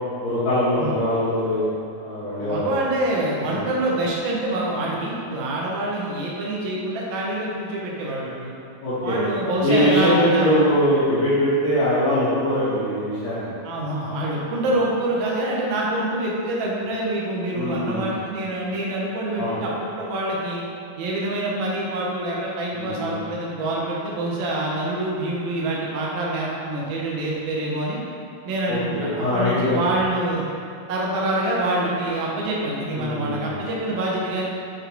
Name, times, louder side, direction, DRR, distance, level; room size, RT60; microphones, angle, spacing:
voice 1, 0.2-1.7 2.0-2.8 3.4-3.6 8.8-9.2 9.6-13.5 14.6-14.7 17.5-18.2 19.4-19.6 22.7-23.2 28.7-29.7 33.0-33.6, equal, 65° left, -13 dB, 2.3 m, -22 dB
voice 2, 2.4-8.5 9.0-10.5 13.6-20.6 21.0-28.0 28.4-30.4 30.9-34.4, right 1 dB, 85° right, -4 dB, 1.1 m, -26 dB
7.2 x 4.9 x 3.1 m, 2.7 s
omnidirectional pair, 3.8 m